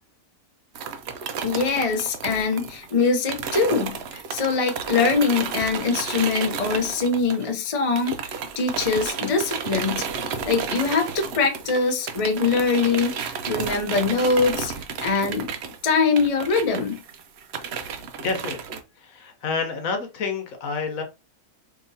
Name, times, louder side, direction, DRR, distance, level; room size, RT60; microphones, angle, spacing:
sound 1, 0.8-7.7 8.0-18.8, right 6 dB, 65° right, 0.7 m, -32 dB
voice 1, 1.4-10.1 10.5-14.7 15.0-15.5 15.8-17.0, left 4 dB, 40° left, 0.5 m, -23 dB
voice 2, 18.2-21.0, left 4 dB, 60° left, 1.2 m, -29 dB
5.0 x 2.9 x 2.7 m
omnidirectional pair, 1.7 m